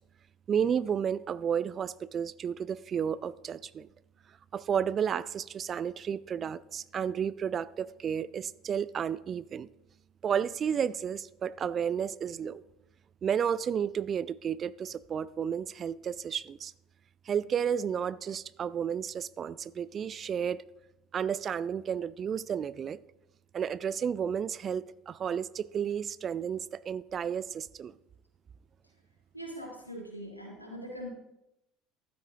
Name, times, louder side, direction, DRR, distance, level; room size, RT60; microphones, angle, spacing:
voice 1, 0.5-3.9 4.5-9.7 10.2-12.6 13.2-16.7 17.3-20.6 21.1-23.0 23.5-28.0, right 8 dB, 35° right, 0.4 m, -32 dB
voice 2, 29.3-31.1, equal, 90° left, 2.5 m, -41 dB
14.5 x 12.5 x 2.9 m
figure-of-eight pair, 65°, 0 cm